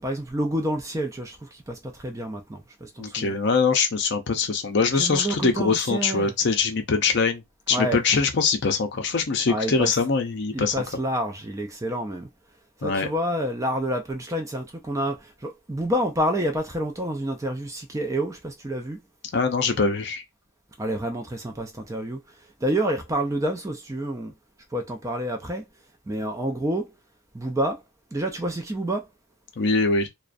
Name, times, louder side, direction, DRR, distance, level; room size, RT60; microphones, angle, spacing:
voice 1, 0.0-3.4 5.0-6.3 7.7-8.0 9.5-9.9 10.5-12.3 12.8-15.2 15.4-19.0 20.8-22.2 22.6-24.3 24.7-25.6 26.1-26.8 27.3-27.8 28.1-29.0, right 1 dB, 15° right, 0.3 m, -28 dB
voice 2, 3.0-7.4 7.7-10.8 12.8-13.1 19.3-20.2 29.6-30.1, left 4 dB, 55° left, 0.5 m, -23 dB
2.4 x 2.1 x 2.4 m
head